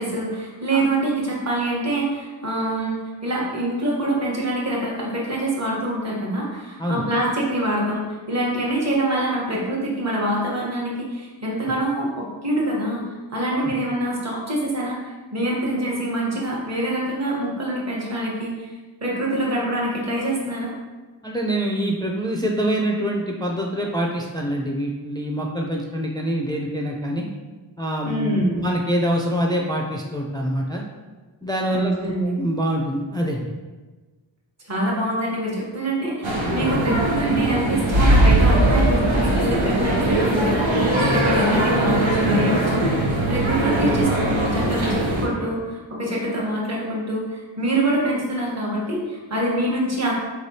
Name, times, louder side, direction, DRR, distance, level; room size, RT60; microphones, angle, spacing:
voice 1, 0.0-13.0 13.3-18.7 19.0-20.7 28.0-28.6 31.7-32.4 34.6-50.1, right 1 dB, 35° right, -4 dB, 1.2 m, -25 dB
voice 2, 21.2-27.3 27.8-30.8 31.4-33.5 36.6-36.7 41.0-41.1, equal, 10° left, -1 dB, 0.4 m, -25 dB
sound 1, 36.2-45.3, right 1 dB, 85° right, 0.9 m, -20 dB
4.7 x 3.2 x 2.7 m, 1.3 s
wide cardioid pair, 65°, 45 cm